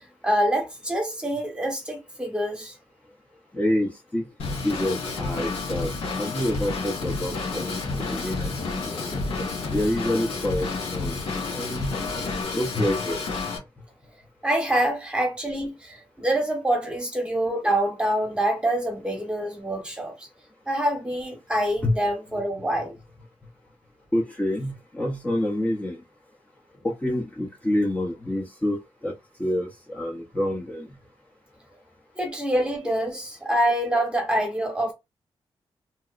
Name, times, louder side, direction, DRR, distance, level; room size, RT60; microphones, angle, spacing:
voice 1, 0.0-2.7 14.4-20.3 20.7-22.9 32.2-34.9, right 1 dB, 10° right, 1.2 m, -26 dB
voice 2, 3.5-4.3 4.6-9.0 9.7-11.2 11.5-11.9 12.5-13.2 21.8-22.0 24.1-26.0 26.8-28.8 29.0-29.1 29.4-30.9, left 1 dB, 15° left, 0.8 m, -27 dB
Drum kit / Drum, 4.4-13.6, left 3 dB, 80° left, 1.3 m, -30 dB
sound 1, 6.9-12.4, left 3 dB, 50° left, 0.7 m, -41 dB
3.0 x 2.9 x 2.4 m
wide cardioid pair, 135°, 10 cm